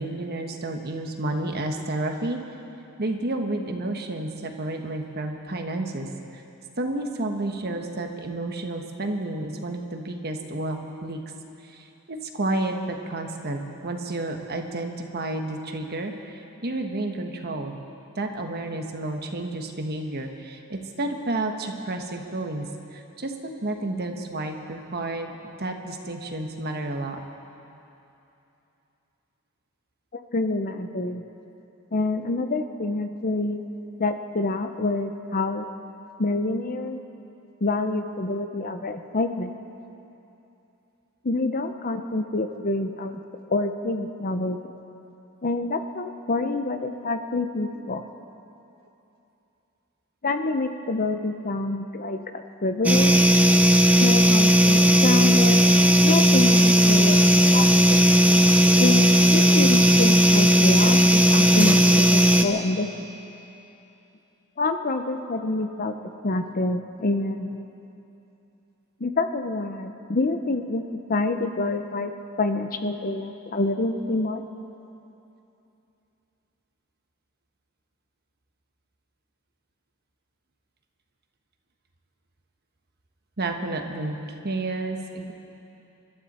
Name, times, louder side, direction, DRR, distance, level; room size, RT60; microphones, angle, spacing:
voice 1, 0.0-2.4 3.0-6.4 6.8-11.2 11.6-17.7 18.1-22.6 22.9-25.3 25.6-27.2 83.4-84.2 84.4-85.3, right 2 dB, 50° right, 4 dB, 1.3 m, -31 dB
voice 2, 30.1-31.2 31.9-33.6 34.0-35.7 36.2-37.0 37.6-39.5 41.2-43.2 43.5-44.7 45.4-48.0 50.2-53.2 54.0-58.1 58.8-62.9 64.6-65.9 66.2-67.6 69.0-70.8 71.1-72.1 72.4-74.4, left 2 dB, 40° left, 8 dB, 0.7 m, -27 dB
sound 1, 52.8-62.4, equal, 5° right, 0.7 m, -16 dB
27.5 x 12.5 x 4.3 m, 2.9 s
head